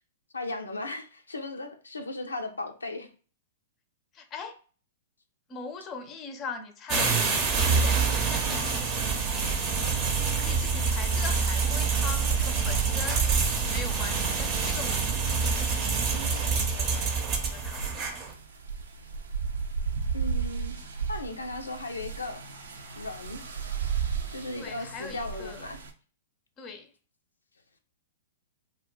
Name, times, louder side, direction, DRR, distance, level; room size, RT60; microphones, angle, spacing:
voice 1, 0.3-3.1 20.1-20.8 21.1-22.4 23.0-23.4 24.3-25.8, left 2 dB, 90° left, 0.5 m, -36 dB
voice 2, 4.1-4.6 5.5-9.2 9.7-13.3 13.7-17.9 24.5-25.7 26.6-26.9, left 4 dB, 30° left, 0.6 m, -41 dB
sound 1, 6.9-18.3, right 5 dB, 35° right, 0.7 m, -26 dB
sound 2, 7.5-25.9, right 6 dB, 75° right, 0.5 m, -36 dB
2.3 x 2.2 x 3.7 m
hypercardioid pair, 110°, 0 cm